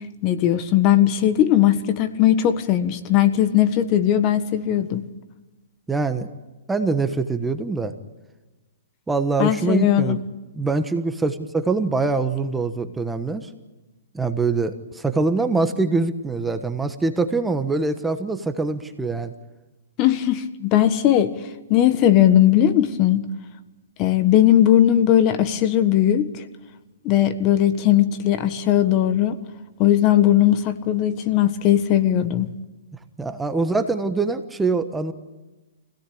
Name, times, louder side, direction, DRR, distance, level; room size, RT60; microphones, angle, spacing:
voice 1, 0.2-5.0 9.4-10.2 20.0-21.3 21.7-23.2 24.0-26.3 27.0-29.4 29.8-32.5, left 11 dB, 35° left, 11 dB, 1.4 m, -18 dB
voice 2, 5.9-6.3 6.7-7.9 9.1-10.2 10.5-13.5 14.1-19.3 33.2-35.1, right 3 dB, 5° right, 8 dB, 1.3 m, -24 dB
25.5 x 17.0 x 8.7 m, 1.2 s
hypercardioid pair, 140°, 0 cm